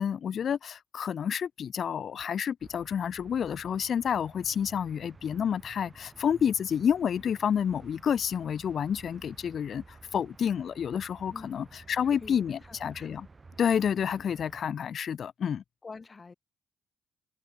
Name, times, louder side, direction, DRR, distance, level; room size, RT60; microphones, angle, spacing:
voice 1, 0.0-13.3 13.6-15.6, left 8 dB, 55° left, 0.6 m, -29 dB
sound 1, 2.6-14.6, right 3 dB, 25° right, 6.0 m, -53 dB
voice 2, 11.3-11.7 12.0-13.1 15.8-16.3, left 4 dB, 30° left, 2.1 m, -47 dB
cardioid pair, 90°, 0 cm